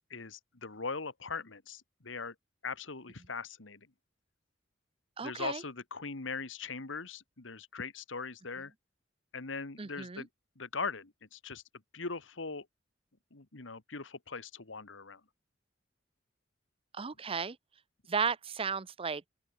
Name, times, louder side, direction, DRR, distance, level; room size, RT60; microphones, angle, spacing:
voice 1, 0.1-2.4 2.6-3.9 5.2-8.7 9.3-10.3 10.6-11.6 11.9-12.7 13.3-15.2, left 4 dB, 80° left, 1.8 m, -40 dB
voice 2, 5.2-5.6 9.8-10.2 16.9-17.6 18.1-19.3, right 5 dB, 30° right, 0.7 m, -34 dB
open air
head